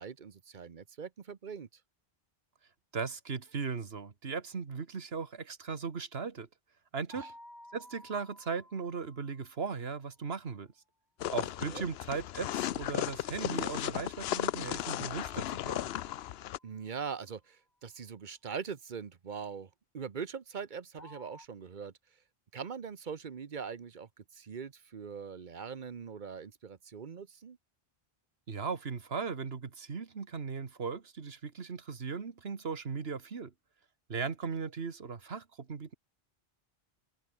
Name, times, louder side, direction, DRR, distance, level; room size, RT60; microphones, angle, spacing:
voice 1, 0.0-1.7 7.1-7.3 11.6-11.9 16.6-21.9 22.5-27.6, right 6 dB, 50° right, 1.1 m, -42 dB
voice 2, 2.9-6.5 6.9-7.3 7.7-10.7 11.3-15.9 28.5-33.5 34.1-35.9, right 5 dB, 75° right, 1.8 m, -38 dB
sound 1, 7.1-10.1 14.9-17.1 21.0-21.5, left 1 dB, 45° left, 6.8 m, -55 dB
sound 2, 11.2-16.6, left 12 dB, 80° left, 0.8 m, -35 dB
open air
omnidirectional pair, 1.0 m